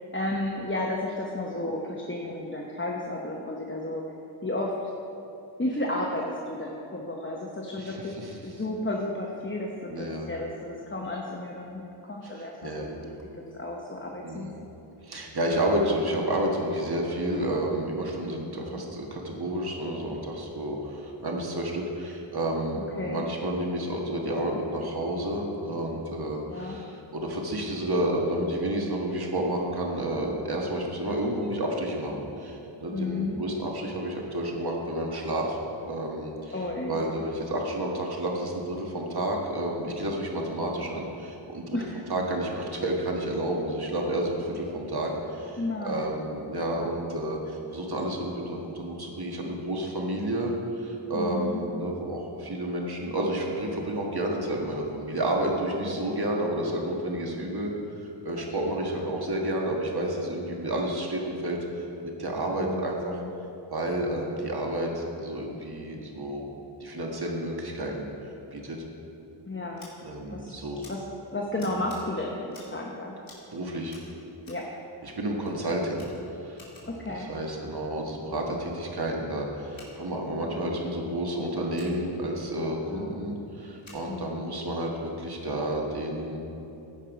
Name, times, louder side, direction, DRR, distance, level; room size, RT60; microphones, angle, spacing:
voice 1, 0.0-4.0 4.4-4.7 5.6-14.5 18.6-18.8 23.0-23.2 26.5-26.8 32.9-33.4 36.5-37.0 41.7-42.2 45.6-46.2 51.1-51.6 58.4-58.7 62.5-63.3 69.5-69.9 70.3-70.6 70.9-71.0 71.3-73.3 74.5-74.7 76.9-77.3 80.3-80.5 82.9-83.2 84.1-84.6, left 2 dB, 25° left, -1 dB, 0.9 m, -33 dB
voice 2, 7.8-8.3 9.9-10.3 12.2-12.9 14.2-14.5 15.0-35.6 35.9-36.5 36.9-41.8 42.1-57.7 58.2-63.2 63.7-66.4 66.8-68.1 68.5-68.8 70.0-70.9 71.6-71.7 73.5-73.9 75.0-76.1 76.4-86.4, right 1 dB, 50° right, 0 dB, 1.6 m, -30 dB
Scissors, 69.7-69.9 70.8-70.9 71.6-72.0 72.5-72.8 73.2-73.5 73.8-74.7 75.4-75.5 75.9-77.0 79.7-79.9 81.7-82.0 83.8-84.0, left 2 dB, 65° left, 2.8 m, -51 dB
16.0 x 5.4 x 5.2 m, 2.8 s
wide cardioid pair, 70°, 49 cm